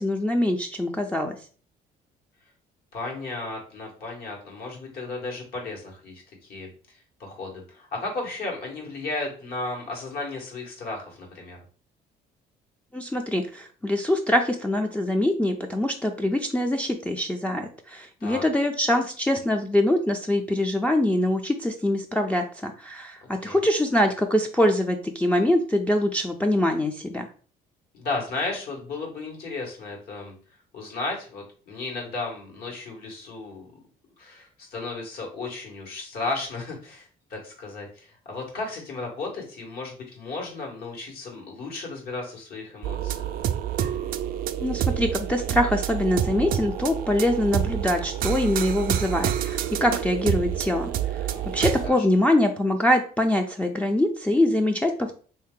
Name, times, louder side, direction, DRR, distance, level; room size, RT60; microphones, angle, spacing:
voice 1, 0.0-1.4 12.9-27.3 44.6-50.9 51.5-55.2, left 1 dB, 10° left, 1 dB, 0.4 m, -24 dB
voice 2, 2.9-11.6 18.2-18.4 23.2-23.6 27.9-30.3 30.7-33.7 34.2-43.3 51.3-52.0, left 3 dB, 65° left, 0 dB, 1.6 m, -34 dB
sound 1, 42.8-51.9, right 10 dB, 60° right, 0.4 m, -28 dB
3.3 x 2.7 x 3.7 m, 0.41 s
cardioid pair, 110°, 17 cm